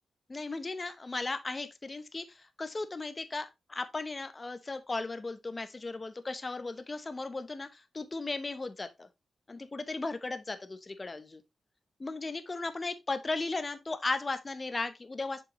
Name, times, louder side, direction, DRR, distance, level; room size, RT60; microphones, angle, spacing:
voice 1, 0.3-9.1 9.5-11.4 12.0-15.4, left 3 dB, 30° left, 0.7 m, -36 dB
6.9 x 5.6 x 3.0 m
cardioid pair, 90°, 0 cm